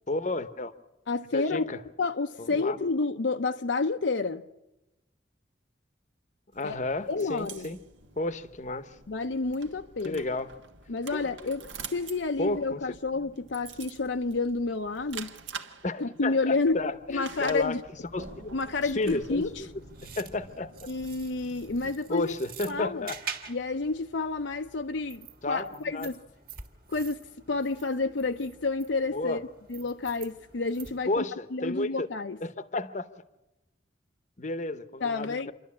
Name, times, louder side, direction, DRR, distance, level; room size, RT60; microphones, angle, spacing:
voice 1, 0.1-0.7 1.3-1.8 2.4-2.8 6.5-7.8 8.2-9.0 10.0-10.5 11.1-11.5 12.4-12.8 15.8-17.8 18.1-18.6 19.0-19.7 20.0-20.9 21.8-23.2 25.4-26.1 29.1-29.4 31.1-32.1 32.4-33.1 34.4-35.5, left 2 dB, 40° left, 0.9 m, -32 dB
voice 2, 1.1-1.7 2.0-4.4 6.6-6.8 7.1-7.7 9.1-10.3 10.9-11.6 11.9-15.3 16.0-16.8 17.1-17.8 18.5-19.5 20.9-22.3 22.7-23.1 23.5-26.2 26.9-27.2 27.5-29.4 29.7-31.2 31.5-32.4 35.0-35.5, left 3 dB, 70° left, 0.7 m, -30 dB
sound 1, 6.5-21.9, right 5 dB, 80° right, 1.4 m, -47 dB
sound 2, 18.6-31.2, right 6 dB, 50° right, 1.9 m, -47 dB
27.5 x 12.0 x 8.5 m
head